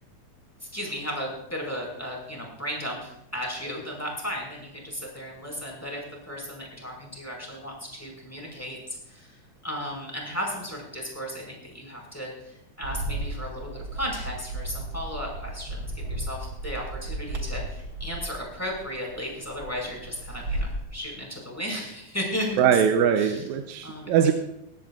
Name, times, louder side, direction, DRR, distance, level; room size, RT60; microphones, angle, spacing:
voice 1, 0.7-6.0 6.3-8.8 9.1-9.4 9.6-22.6 23.2-23.4 23.8-24.1, equal, 5° left, -1 dB, 5.2 m, -35 dB
Bird, 12.8-20.8, right 1 dB, 50° right, 2.6 m, -34 dB
voice 2, 22.6-24.3, right 8 dB, 80° right, 5 dB, 2.1 m, -21 dB
21.5 x 16.5 x 2.5 m, 0.84 s
omnidirectional pair, 3.3 m